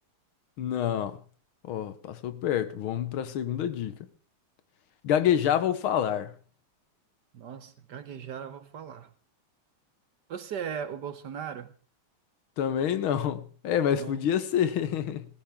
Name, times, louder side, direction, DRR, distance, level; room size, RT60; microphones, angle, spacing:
voice 1, 0.6-1.2 1.6-4.0 5.0-6.3 12.6-15.3, left 9 dB, 75° left, 1.8 m, -27 dB
voice 2, 7.3-9.1 10.3-11.7 13.9-14.2, right 8 dB, 60° right, 1.4 m, -38 dB
18.5 x 14.5 x 3.6 m
omnidirectional pair, 2.3 m